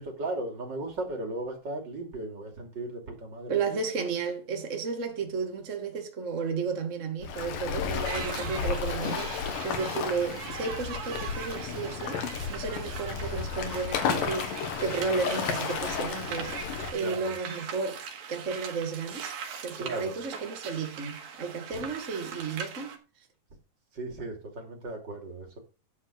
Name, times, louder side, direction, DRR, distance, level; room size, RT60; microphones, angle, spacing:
voice 1, 0.0-3.8 17.0-17.3 19.8-20.2 21.7-21.8 23.9-25.6, right 2 dB, 35° right, 2.8 m, -36 dB
voice 2, 3.5-12.2 12.5-14.5 14.8-16.5 16.9-18.0 18.3-19.3 19.6-22.9, right 5 dB, 70° right, 0.7 m, -33 dB
Waves surf, 7.2-16.9, left 6 dB, 70° left, 3.1 m, -33 dB
sound 1, 8.0-23.0, right 7 dB, 85° right, 3.6 m, -41 dB
12.0 x 4.9 x 6.6 m
omnidirectional pair, 4.1 m